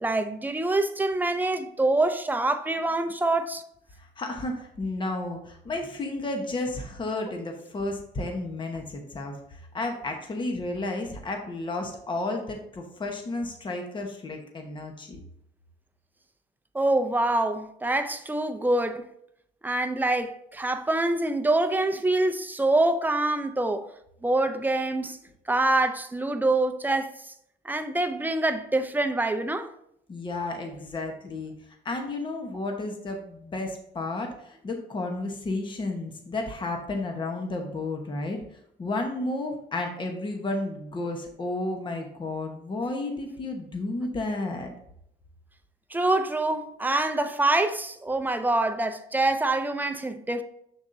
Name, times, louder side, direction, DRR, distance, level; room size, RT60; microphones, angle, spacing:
voice 1, 0.0-3.6 16.7-19.0 19.6-23.8 24.2-25.2 25.5-27.1 27.7-29.7 45.9-50.4, right 2 dB, 10° right, 0.5 m, -25 dB
voice 2, 4.0-15.2 30.1-31.5 31.8-38.4 38.8-44.7, left 2 dB, 30° left, 1.0 m, -32 dB
7.2 x 6.9 x 2.6 m
cardioid pair, 145°, 17 cm